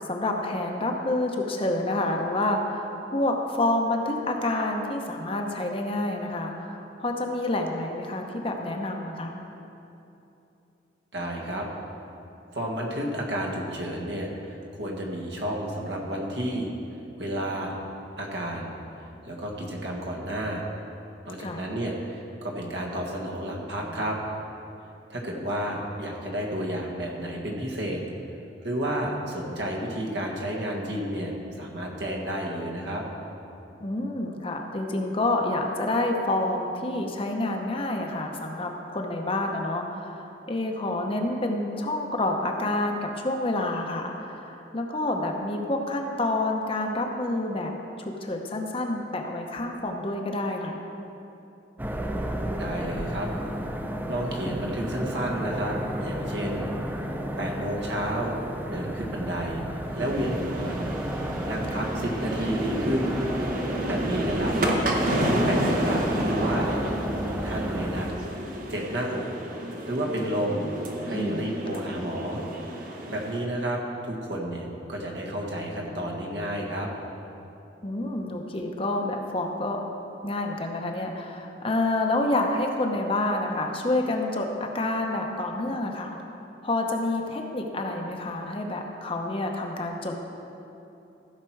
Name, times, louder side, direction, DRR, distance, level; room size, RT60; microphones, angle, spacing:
voice 1, 0.1-9.4 21.4-21.7 33.8-47.7 48.0-50.8 61.7-61.9 71.1-71.4 77.8-79.8 80.2-86.2 86.6-90.1, left 2 dB, 30° left, 2 dB, 0.8 m, -28 dB
voice 2, 11.1-11.7 12.5-16.7 17.2-17.8 18.2-20.7 21.2-24.2 25.1-28.0 28.6-33.0 52.6-53.3 54.1-55.8 56.0-56.7 57.4-58.3 58.7-60.8 61.4-63.2 63.9-64.5 65.1-66.7 67.4-68.1 68.7-69.2 69.5-70.7 71.0-72.4 73.1-76.9, right 1 dB, 70° right, -1 dB, 1.6 m, -31 dB
sound 1, 51.8-68.1, equal, 10° right, 0.5 m, -33 dB
sound 2, 59.9-73.4, right 1 dB, 50° right, 1.0 m, -30 dB
15.5 x 5.9 x 4.7 m, 2.9 s
head